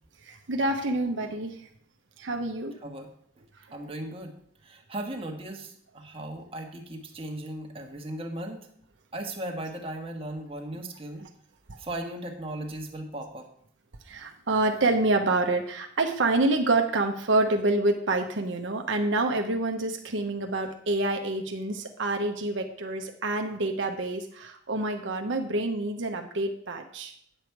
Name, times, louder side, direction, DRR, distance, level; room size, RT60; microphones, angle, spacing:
voice 1, 0.2-1.6 2.2-2.7 11.7-11.8 14.1-27.1, right 2 dB, 75° right, 4 dB, 0.9 m, -27 dB
voice 2, 3.7-4.3 4.6-8.7 9.1-11.3 11.8-13.5, right 1 dB, 30° right, 2 dB, 1.3 m, -37 dB
9.1 x 6.9 x 4.6 m, 0.64 s
head